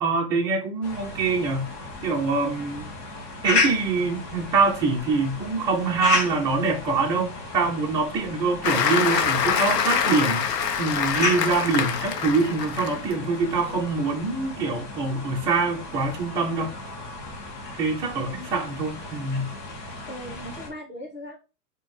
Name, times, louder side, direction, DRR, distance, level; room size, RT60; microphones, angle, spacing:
voice 1, 0.0-1.7 2.0-2.9 3.4-16.7 17.8-19.5, right 4 dB, 10° right, 0.4 m, -25 dB
sound 1, 0.8-20.7, left 3 dB, 40° left, 1.4 m, -34 dB
Applause, 8.6-13.1 13.6-13.8, left 7 dB, 80° left, 0.8 m, -25 dB
voice 2, 18.1-18.5 20.1-21.4, equal, 20° left, 2.2 m, -39 dB
5.0 x 2.8 x 3.6 m
hypercardioid pair, 130°, 49 cm